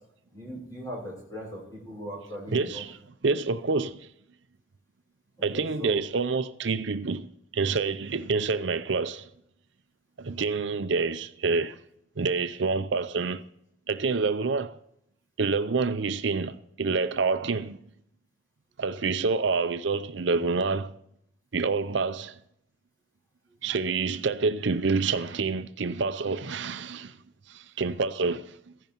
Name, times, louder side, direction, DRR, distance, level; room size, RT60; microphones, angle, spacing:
voice 1, 0.3-2.8 5.5-6.0, equal, 20° left, 6.2 m, -39 dB
voice 2, 2.5-3.0 3.2-4.1 5.4-7.3 7.5-9.3 10.2-11.8 12.2-13.4 13.9-14.8 15.4-17.8 18.8-20.9 21.5-22.3 23.6-27.2 27.5-28.5, right 4 dB, 70° right, 0.6 m, -27 dB
15.5 x 10.5 x 4.5 m
head